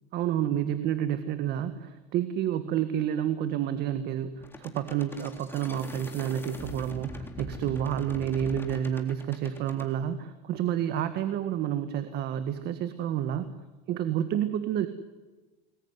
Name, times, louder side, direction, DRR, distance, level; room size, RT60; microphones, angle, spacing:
voice 1, 0.1-13.5 13.9-14.9, right 10 dB, 55° right, 10 dB, 1.7 m, -29 dB
sound 1, 4.4-9.9, left 2 dB, 10° left, 3.6 m, -42 dB
29.0 x 21.0 x 9.8 m, 1.2 s
supercardioid pair, 110°, 20 cm